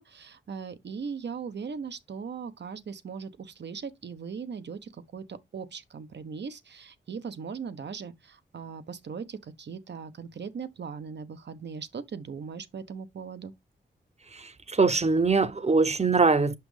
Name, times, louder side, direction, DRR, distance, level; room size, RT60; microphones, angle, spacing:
voice 1, 0.0-13.5, right 6 dB, 65° right, 0.9 m, -39 dB
voice 2, 14.3-16.5, right 4 dB, 35° right, 0.9 m, -23 dB
5.8 x 5.2 x 3.3 m
cardioid pair, 50°, 19 cm